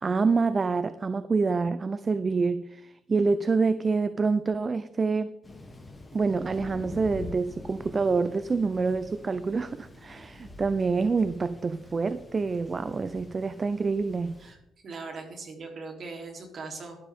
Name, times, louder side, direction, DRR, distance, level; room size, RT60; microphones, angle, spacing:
voice 1, 0.0-5.3 6.1-14.3, right 4 dB, 35° right, 13 dB, 0.6 m, -27 dB
Thunder, 5.4-14.5, left 2 dB, 20° left, 2.5 m, -46 dB
voice 2, 14.8-17.0, right 3 dB, 50° right, 2 dB, 3.4 m, -40 dB
12.0 x 12.0 x 3.6 m, 0.84 s
cardioid pair, 90°, 0 cm